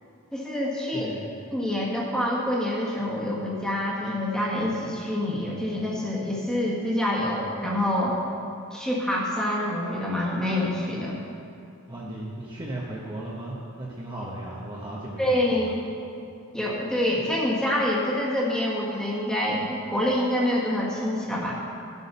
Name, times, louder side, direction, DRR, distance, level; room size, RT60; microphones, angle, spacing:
voice 1, 0.3-1.1 1.5-8.2 8.7-11.2 15.2-15.8 16.5-21.5, left 1 dB, 5° left, -5 dB, 1.6 m, -26 dB
voice 2, 0.9-1.4 11.9-15.7, right 1 dB, 20° right, -5 dB, 1.0 m, -36 dB
12.5 x 8.3 x 5.5 m, 2.6 s
head